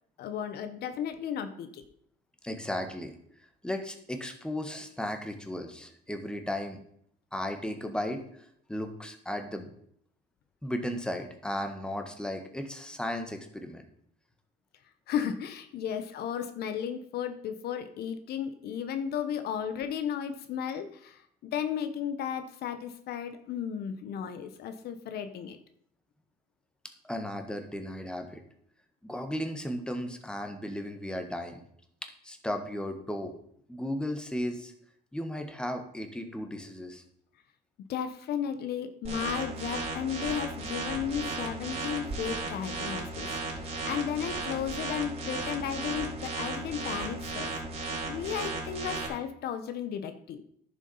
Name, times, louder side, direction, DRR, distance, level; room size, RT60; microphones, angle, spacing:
voice 1, 0.2-1.8 15.1-25.6 37.9-47.5 48.1-50.4, left 8 dB, 70° left, 10 dB, 1.0 m, -34 dB
voice 2, 2.4-3.1 3.6-6.8 7.3-9.7 10.6-13.9 27.0-28.4 29.0-31.6 32.0-33.3 33.7-34.7 35.1-37.0, left 1 dB, 5° left, 6 dB, 1.6 m, -35 dB
sound 1, 39.0-49.1, right 3 dB, 40° right, 3.5 m, -35 dB
10.5 x 7.2 x 5.5 m, 0.67 s
cardioid pair, 110°, 17 cm